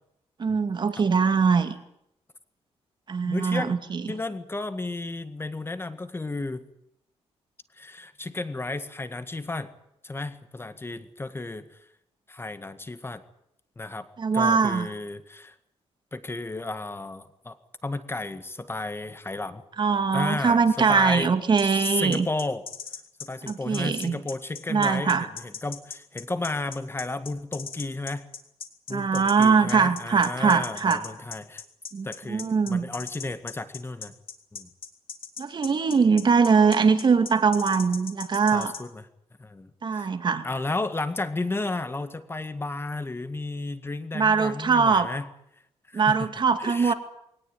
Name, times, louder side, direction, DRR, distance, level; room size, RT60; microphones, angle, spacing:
voice 1, 0.4-1.7 3.1-4.0 14.2-14.9 19.8-22.3 23.5-24.2 24.7-25.3 28.9-31.0 31.9-32.9 35.4-38.7 39.8-40.5 44.1-45.1 45.9-46.9, right 5 dB, 45° right, 9 dB, 2.4 m, -22 dB
voice 2, 3.2-3.8 4.1-6.6 7.7-9.7 10.0-11.7 12.3-13.2 13.8-14.1 14.3-15.6 16.1-17.6 17.8-19.6 20.1-21.3 21.6-22.6 23.2-25.2 25.4-28.3 28.9-31.6 32.0-34.1 34.5-34.7 38.5-39.0 39.4-40.1 40.4-45.3 45.9-46.3 46.6-46.9, left 2 dB, 20° left, 11 dB, 1.9 m, -33 dB
sound 1, 21.6-38.8, left 6 dB, 55° left, 3.0 m, -38 dB
21.5 x 19.0 x 9.3 m, 0.76 s
cardioid pair, 95°, 11 cm